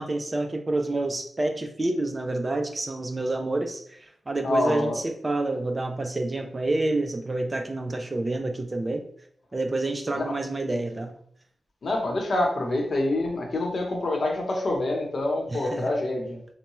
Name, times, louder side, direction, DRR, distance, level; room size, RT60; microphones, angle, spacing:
voice 1, 0.0-9.0 9.5-11.1 15.5-15.9, right 2 dB, 25° right, 5 dB, 0.4 m, -28 dB
voice 2, 4.4-5.0 10.1-10.3 11.8-16.4, left 2 dB, 55° left, 1 dB, 0.9 m, -26 dB
5.4 x 2.2 x 3.0 m, 0.64 s
wide cardioid pair, 130°, 0 cm